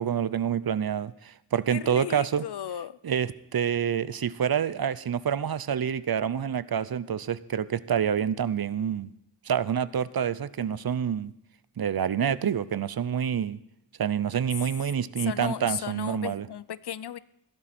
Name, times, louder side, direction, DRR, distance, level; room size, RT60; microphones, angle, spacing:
voice 1, 0.0-2.4 3.0-9.1 9.4-11.3 11.8-13.6 14.0-16.5, right 8 dB, 60° right, 17 dB, 0.6 m, -27 dB
voice 2, 1.7-3.0 15.2-17.2, left 9 dB, 75° left, 18 dB, 0.6 m, -35 dB
15.0 x 12.0 x 4.3 m, 0.81 s
wide cardioid pair, 55°, 41 cm